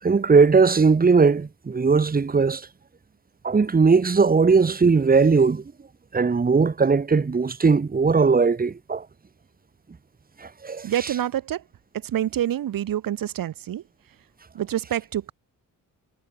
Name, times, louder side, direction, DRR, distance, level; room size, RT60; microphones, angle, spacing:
voice 1, 0.0-2.7 3.4-5.6 6.1-9.1 10.4-10.9, right 4 dB, 25° right, 3.5 m, -19 dB
voice 2, 10.8-11.6 11.9-13.8 14.5-15.3, right 11 dB, 75° right, 4.0 m, -27 dB
wide cardioid pair, 150°, 34 cm